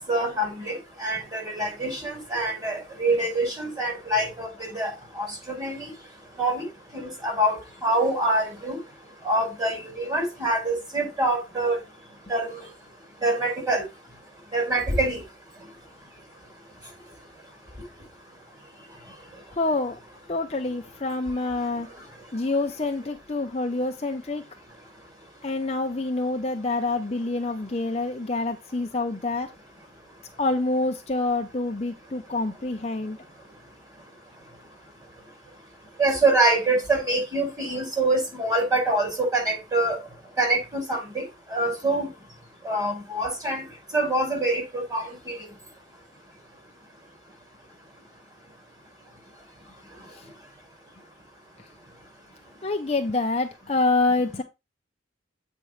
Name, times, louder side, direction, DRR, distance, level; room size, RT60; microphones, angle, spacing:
voice 1, 0.1-4.9 5.1-5.9 6.4-6.7 6.9-8.8 9.2-11.8 12.3-12.6 13.2-13.8 14.5-15.2 36.0-40.0 40.4-41.2 41.5-42.1 42.6-43.6 43.9-45.4, right 2 dB, 20° right, 4.9 m, -25 dB
voice 2, 19.6-20.0 20.3-21.9 22.3-24.4 25.4-29.5 30.4-33.2 50.1-50.3 52.6-54.4, left 2 dB, 30° left, 0.7 m, -27 dB
8.2 x 5.3 x 3.2 m
head